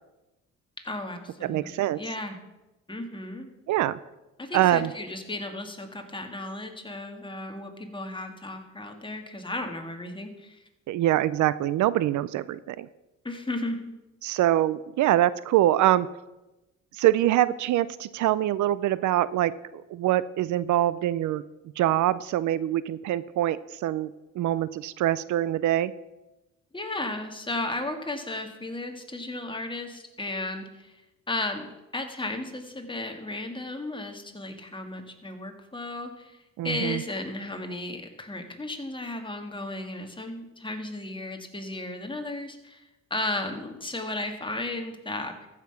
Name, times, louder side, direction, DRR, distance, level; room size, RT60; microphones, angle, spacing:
voice 1, 0.8-2.4 2.9-3.5 4.4-10.6 13.2-13.9 26.7-30.9 31.3-31.7 31.9-36.4 36.6-45.5, left 2 dB, 15° left, 5 dB, 1.7 m, -34 dB
voice 2, 1.4-2.0 3.7-4.0 4.5-4.9 10.9-12.9 14.2-16.1 16.9-21.4 21.8-25.9 36.6-37.0, right 13 dB, 75° right, 17 dB, 0.5 m, -24 dB
14.5 x 5.9 x 5.8 m, 1.0 s
cardioid pair, 90°, 30 cm